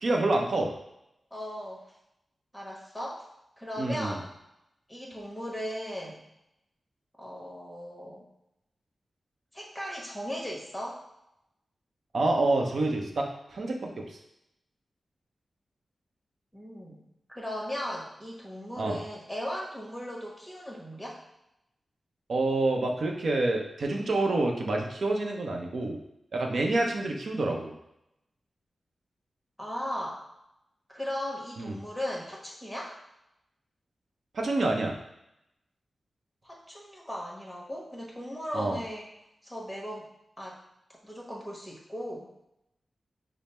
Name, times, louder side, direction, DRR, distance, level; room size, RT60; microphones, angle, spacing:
voice 1, 0.0-0.7 3.8-4.2 12.1-14.2 18.8-19.0 22.3-26.0 26.3-27.7 31.6-31.7 34.3-35.0 38.5-38.8, right 2 dB, 65° right, 2 dB, 0.7 m, -27 dB
voice 2, 1.3-1.8 2.5-3.3 3.6-4.3 4.9-6.2 7.2-8.2 9.5-11.0 16.5-17.0 17.3-21.2 29.6-30.2 30.9-32.9 36.4-39.1 39.4-40.1 40.4-40.6 41.0-42.3, equal, 5° left, -3 dB, 1.2 m, -37 dB
5.2 x 2.0 x 4.3 m, 0.82 s
wide cardioid pair, 95°, 0 cm